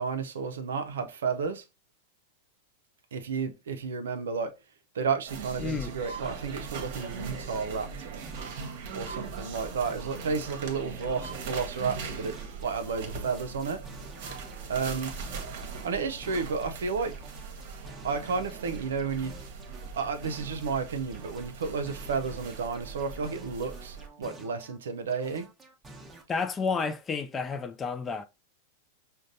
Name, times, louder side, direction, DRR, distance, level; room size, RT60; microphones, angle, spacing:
voice 1, 0.0-1.6 3.1-4.5 4.9-8.2 8.9-12.4 12.6-13.8 14.7-15.1 15.8-17.2 18.0-19.3 19.9-25.5, right 5 dB, 80° right, 0.5 m, -32 dB
sound 1, 5.3-24.1, right 4 dB, 65° right, 0.9 m, -40 dB
voice 2, 5.6-5.9 26.3-28.3, left 5 dB, 20° left, 0.4 m, -31 dB
sound 2, 6.2-8.8 9.1-12.8 13.1-16.8 17.1-20.8 21.1-24.8 25.1-26.2, right 3 dB, 15° right, 0.9 m, -50 dB
5.1 x 2.2 x 2.6 m
hypercardioid pair, 105°, 0 cm